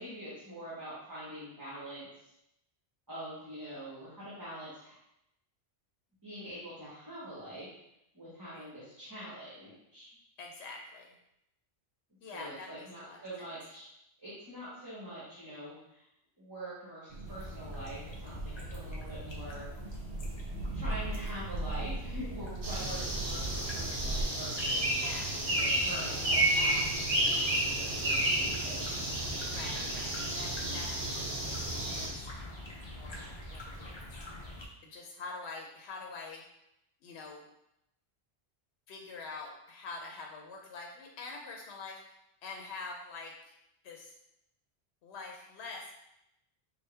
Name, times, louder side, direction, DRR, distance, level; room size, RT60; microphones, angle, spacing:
voice 1, 0.0-2.3 3.1-4.9 6.2-7.7 8.1-10.1 12.3-13.9 14.2-16.1 16.4-19.7 20.7-29.2, right 1 dB, 20° right, -10 dB, 1.0 m, -45 dB
voice 2, 10.4-11.1 12.2-13.2 25.0-25.3 29.5-31.3 31.9-32.6 32.9-34.0 34.8-36.4 37.0-37.4 38.9-43.5 43.8-44.1 45.0-45.9, left 3 dB, 80° left, 0 dB, 0.8 m, -45 dB
sound 1, 17.1-24.2, right 2 dB, 75° right, 0.8 m, -39 dB
sound 2, 17.2-34.6, left 1 dB, 35° left, 0.5 m, -46 dB
sound 3, 22.6-32.1, right 1 dB, 55° right, 1.0 m, -31 dB
4.3 x 2.2 x 3.3 m, 0.84 s
omnidirectional pair, 1.1 m